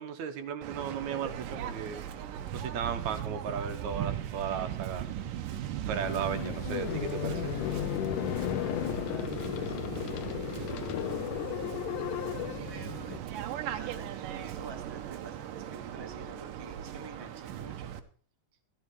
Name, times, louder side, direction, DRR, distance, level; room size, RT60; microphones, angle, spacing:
voice 1, 0.0-2.0 2.5-5.1 5.8-7.6, right 7 dB, 65° right, 7 dB, 2.4 m, -35 dB
Waves surf, 0.6-18.0, right 11 dB, 90° right, 2.7 m, -38 dB
Subway metro underground, 0.7-8.7, right 6 dB, 45° right, 1.6 m, -51 dB
sound 1, 6.0-13.2, left 13 dB, 85° left, 2.3 m, -34 dB
voice 2, 8.4-9.8 10.5-11.5 12.3-13.2 13.7-17.9, right 3 dB, 20° right, 4 dB, 0.6 m, -49 dB
13.5 x 13.0 x 4.7 m, 0.41 s
omnidirectional pair, 3.7 m